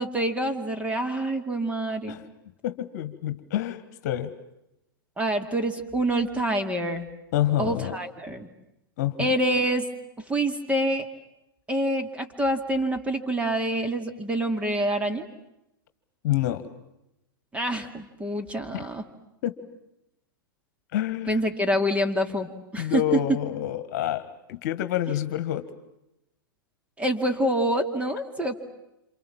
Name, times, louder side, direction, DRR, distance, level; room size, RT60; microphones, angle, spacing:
voice 1, 0.0-2.2 5.2-7.1 7.6-8.5 9.2-9.9 10.3-11.1 11.7-15.3 17.5-19.0 21.3-22.5 22.7-23.0 27.0-28.5, right 1 dB, 10° right, 6 dB, 2.4 m, -26 dB
voice 2, 2.6-4.3 7.3-8.0 9.0-9.3 16.2-16.7 18.7-18.8 19.4-19.6 20.9-21.4 22.8-25.7, left 12 dB, 50° left, 12 dB, 1.7 m, -28 dB
28.0 x 27.5 x 7.4 m, 0.87 s
figure-of-eight pair, 100°, 12 cm